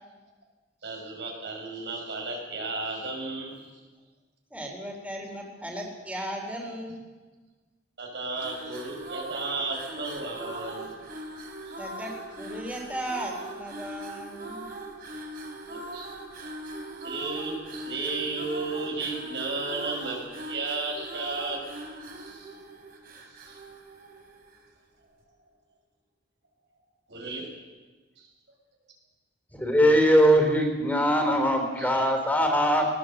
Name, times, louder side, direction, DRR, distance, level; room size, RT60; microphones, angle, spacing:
voice 1, 0.8-3.6 8.0-11.0 11.6-11.8 15.7-16.1 17.0-21.6 22.1-22.5 23.3-23.6 27.1-27.5 31.8-32.0, right 3 dB, 75° right, 1 dB, 6.5 m, -34 dB
voice 2, 4.5-7.0 11.8-14.7, right 1 dB, 10° right, 0 dB, 3.5 m, -36 dB
sound 1, 8.3-24.7, right 1 dB, 55° right, 4.1 m, -41 dB
voice 3, 29.6-32.9, equal, 10° left, 3 dB, 3.5 m, -21 dB
19.5 x 17.0 x 7.8 m, 1.3 s
head